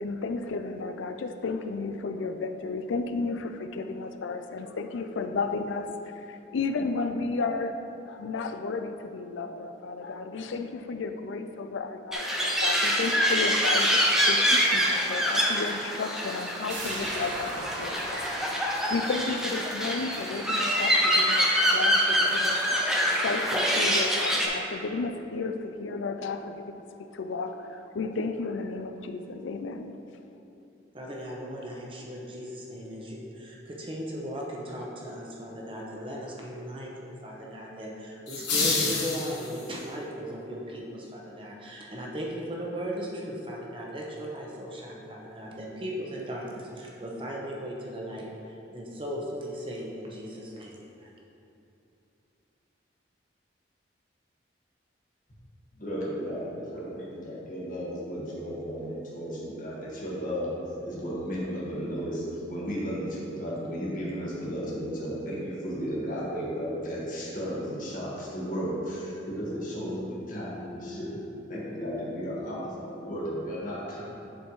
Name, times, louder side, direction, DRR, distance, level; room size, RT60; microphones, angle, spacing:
voice 1, 0.0-5.9 6.2-7.8 8.1-18.2 18.6-21.5 21.7-22.6 23.2-26.8 27.1-29.9, left 4 dB, 85° left, 8 dB, 0.4 m, -33 dB
sound 1, 12.1-24.5, equal, 5° right, 0.6 m, -25 dB
sound 2, 16.7-22.2 22.5-22.6, right 2 dB, 90° right, 1.0 m, -41 dB
voice 2, 30.9-51.1, equal, 30° right, -2 dB, 0.9 m, -37 dB
sound 3, 38.3-39.8, left 3 dB, 65° left, 1.3 m, -28 dB
voice 3, 55.8-60.5 60.8-71.2 71.5-74.0, equal, 45° left, -6 dB, 1.5 m, -34 dB
10.0 x 4.3 x 3.1 m, 2.8 s
head